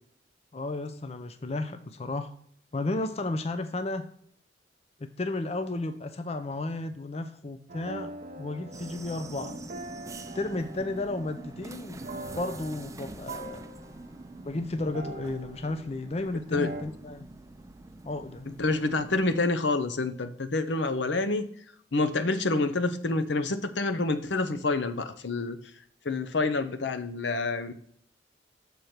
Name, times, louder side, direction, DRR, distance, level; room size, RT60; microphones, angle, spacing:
voice 1, 0.5-2.3 2.7-4.0 5.0-9.6 10.3-12.0 12.4-13.6 14.4-17.3 18.0-18.5, left 2 dB, 35° left, 9 dB, 0.5 m, -33 dB
sound 1, 7.7-16.1 16.5-16.8, right 2 dB, 45° right, 0.9 m, -43 dB
sound 2, 8.7-19.4, right 2 dB, 15° right, 0.5 m, -45 dB
voice 2, 18.6-21.5 21.9-25.6 26.0-27.7, left 3 dB, 75° left, 10 dB, 0.7 m, -27 dB
6.8 x 4.4 x 6.4 m, 0.63 s
head